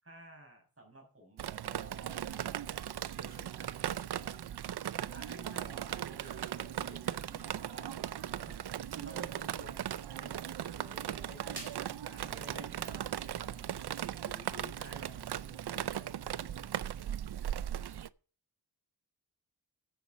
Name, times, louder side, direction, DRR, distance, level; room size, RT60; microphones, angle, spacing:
voice 1, 0.0-4.3 5.1-8.6 8.9-10.8 11.3-13.9 14.2-17.1, equal, 35° right, 1 dB, 5.7 m, -54 dB
Drip, 1.4-18.1, right 10 dB, 75° right, 0.5 m, -38 dB
voice 2, 10.8-11.6 12.2-12.9, right 1 dB, 5° right, -1 dB, 4.2 m, -56 dB
sound 1, 11.5-14.4, right 2 dB, 60° right, 4.2 m, -59 dB
10.0 x 7.1 x 6.3 m, 0.38 s
wide cardioid pair, 65°, 39 cm